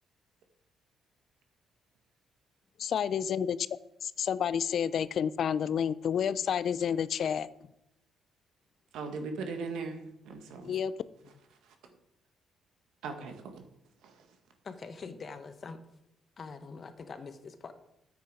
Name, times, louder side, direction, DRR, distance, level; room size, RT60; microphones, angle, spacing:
voice 1, 2.8-3.6 4.0-7.5 10.6-10.9, left 8 dB, 60° left, 0.4 m, -30 dB
voice 2, 8.9-10.8 11.6-11.9 13.0-13.6 14.0-14.3, right 4 dB, 85° right, 1.7 m, -39 dB
voice 3, 14.6-15.8 16.4-17.7, left 4 dB, 45° left, 1.2 m, -44 dB
9.5 x 8.2 x 4.9 m
cardioid pair, 90°, 0 cm